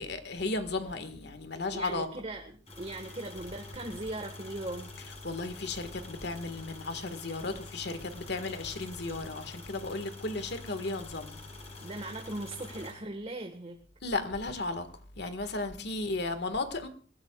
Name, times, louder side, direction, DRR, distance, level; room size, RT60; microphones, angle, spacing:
voice 1, 0.0-2.1 5.2-11.4 14.0-14.9 15.2-16.9, left 3 dB, 65° left, 1.8 m, -34 dB
voice 2, 1.7-4.9 11.8-13.8 15.8-15.9, right 2 dB, 35° right, 1.6 m, -39 dB
sound 1, 2.7-12.9, left 2 dB, 35° left, 6.3 m, -46 dB
26.5 x 16.0 x 2.4 m
head